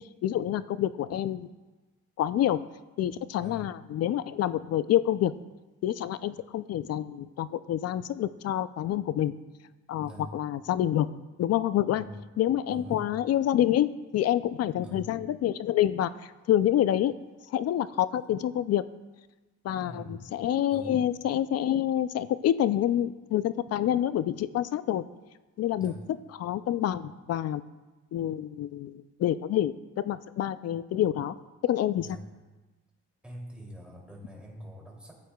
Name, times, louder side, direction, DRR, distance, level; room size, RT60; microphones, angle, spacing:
voice 1, 0.2-1.5 2.2-2.6 3.0-5.3 5.8-9.3 9.9-11.1 11.4-12.0 12.4-17.1 17.5-18.8 19.6-25.0 25.6-25.9 26.4-27.6 28.1-31.3 31.6-32.1, left 11 dB, 55° left, 15 dB, 0.4 m, -27 dB
voice 2, 10.0-10.4 11.9-12.2 12.7-13.1 14.8-15.2 19.8-20.2 20.7-21.0 25.8-26.0 32.0-32.2 33.2-35.1, equal, 5° right, -3 dB, 2.8 m, -44 dB
14.5 x 8.4 x 2.3 m, 1.2 s
cardioid pair, 90°, 30 cm